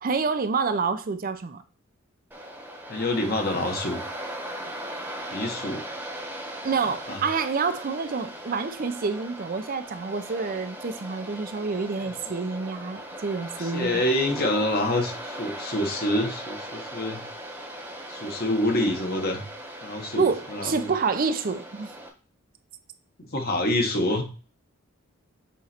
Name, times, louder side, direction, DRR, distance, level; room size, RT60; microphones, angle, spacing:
voice 1, 0.0-1.6 6.6-14.0 20.2-21.9, right 5 dB, 40° right, 0.5 m, -28 dB
Waves surf, 2.3-22.1, right 1 dB, 10° right, 1.0 m, -39 dB
voice 2, 2.9-4.0 5.3-5.8 7.1-7.2 12.3-12.4 13.6-17.2 18.1-19.4 19.8-20.9 23.2-24.2, left 1 dB, 45° left, 1.2 m, -27 dB
7.2 x 3.1 x 4.2 m
head